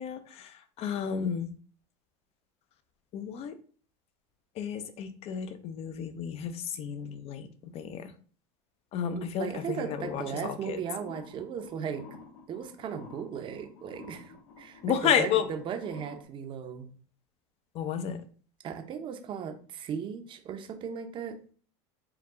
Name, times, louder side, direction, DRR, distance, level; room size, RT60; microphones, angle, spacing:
voice 1, 0.0-1.5 3.1-3.5 4.6-8.1 8.9-10.8 14.8-15.5 17.7-18.2, left 8 dB, 40° left, 11 dB, 0.6 m, -32 dB
voice 2, 9.1-12.0 12.5-16.9 18.6-21.4, right 7 dB, 35° right, 6 dB, 0.6 m, -37 dB
sound 1, 9.6-16.2, left 3 dB, 90° left, 1.2 m, -50 dB
4.7 x 2.3 x 3.6 m, 0.43 s
supercardioid pair, 130°, 15 cm